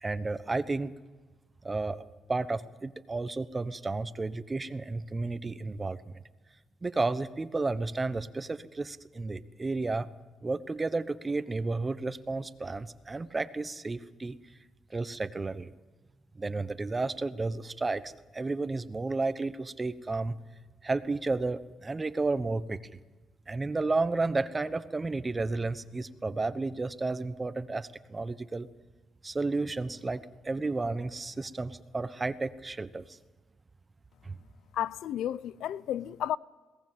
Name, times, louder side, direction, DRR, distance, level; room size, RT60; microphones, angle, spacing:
voice 1, 0.0-0.9 1.6-2.0 2.3-6.1 6.8-10.1 10.4-14.4 14.9-15.7 16.4-20.4 20.8-23.0 23.5-28.7 29.2-33.2 34.2-34.4, right 3 dB, 25° right, 1.1 m, -32 dB
voice 2, 34.7-36.4, left 11 dB, 80° left, 0.5 m, -32 dB
21.0 x 18.0 x 7.5 m
cardioid pair, 90°, 0 cm